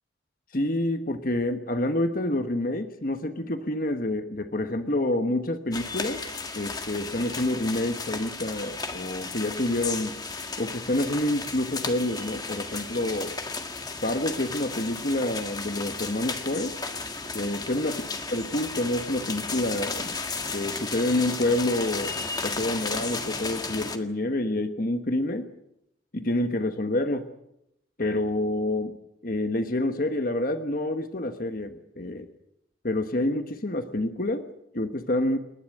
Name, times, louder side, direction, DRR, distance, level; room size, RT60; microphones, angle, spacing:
voice 1, 0.5-6.2 6.5-10.1 10.6-13.3 14.0-16.8 17.3-20.2 20.5-22.2 22.4-25.5 26.1-27.3 28.0-29.0 29.2-32.3 32.8-34.5 34.7-35.4, left 1 dB, 45° left, 7 dB, 1.3 m, -28 dB
sound 1, 5.7-24.0, left 4 dB, 20° left, 1.7 m, -34 dB
29.0 x 11.5 x 10.0 m, 0.80 s
head